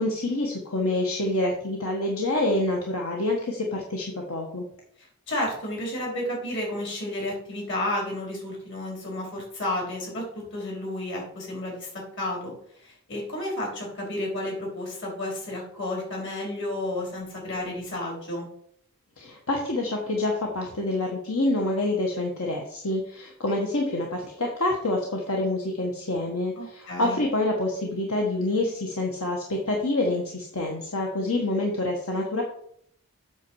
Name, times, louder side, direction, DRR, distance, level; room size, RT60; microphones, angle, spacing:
voice 1, 0.0-4.6 19.2-32.4, left 2 dB, 80° left, 0 dB, 1.5 m, -27 dB
voice 2, 5.0-12.5 12.8-18.5 26.6-27.2, left 1 dB, 60° left, -1 dB, 4.3 m, -32 dB
8.2 x 6.7 x 4.8 m, 0.67 s
head